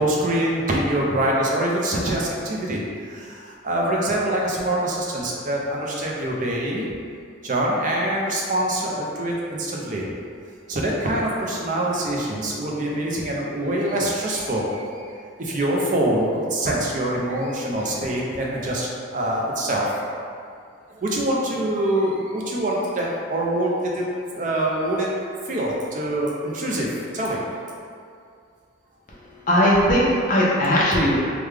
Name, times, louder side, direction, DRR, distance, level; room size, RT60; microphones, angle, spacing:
voice 1, 0.0-6.9 7.4-10.0 10.7-15.1 15.4-20.0 20.9-24.0 24.3-25.1 25.5-27.4, right 1 dB, 40° right, -2 dB, 0.4 m, -24 dB
voice 2, 29.5-31.1, equal, 40° left, -6 dB, 0.6 m, -18 dB
3.4 x 2.2 x 3.2 m, 2.3 s
head